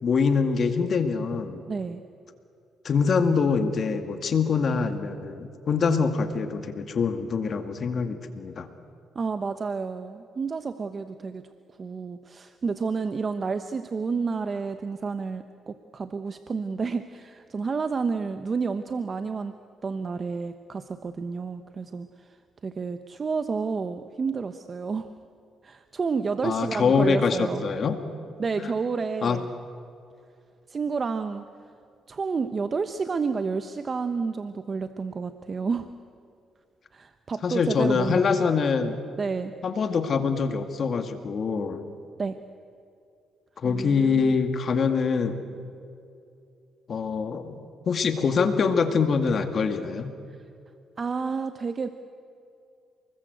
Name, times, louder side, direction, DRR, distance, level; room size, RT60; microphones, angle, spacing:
voice 1, 0.0-1.6 2.8-8.7 26.4-28.0 28.6-28.7 29.2-29.4 37.4-39.0 39.6-41.8 43.6-45.4 46.9-47.6 47.9-50.1, left 5 dB, 50° left, 7 dB, 2.1 m, -24 dB
voice 2, 1.7-2.0 9.1-11.5 11.8-19.5 19.8-22.4 22.6-25.1 25.6-27.6 28.4-29.5 30.7-31.4 32.1-35.9 36.9-38.5 39.2-39.5 42.2-42.4 43.6-44.4 51.0-51.9, right 5 dB, 40° right, 9 dB, 1.1 m, -30 dB
29.0 x 21.0 x 8.1 m, 2.5 s
cardioid pair, 90°, 0 cm